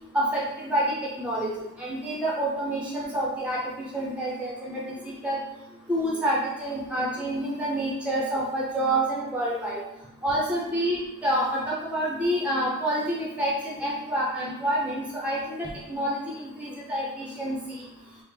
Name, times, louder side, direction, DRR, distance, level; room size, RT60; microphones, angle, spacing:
voice 1, 0.1-1.5 1.8-3.6 3.9-5.4 5.9-9.8 10.2-17.6, right 1 dB, 5° right, -5 dB, 0.7 m, -28 dB
3.5 x 2.1 x 4.4 m, 0.88 s
head